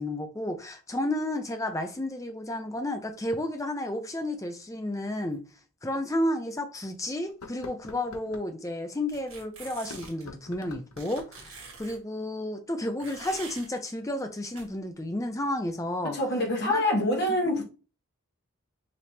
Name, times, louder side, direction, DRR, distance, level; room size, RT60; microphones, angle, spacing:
voice 1, 0.0-5.4 5.8-16.2 16.6-16.8, left 1 dB, 15° left, 0.5 m, -32 dB
sound 1, 5.3-5.4 6.0-6.1 7.3-8.5 9.8-11.4, left 3 dB, 90° left, 0.7 m, -46 dB
sound 2, 9.1-10.2 11.0-12.0 13.0-13.7 14.6-14.7, right 4 dB, 70° right, 1.6 m, -45 dB
voice 2, 16.0-17.6, left 1 dB, 50° left, 1.2 m, -26 dB
5.1 x 3.0 x 2.8 m
head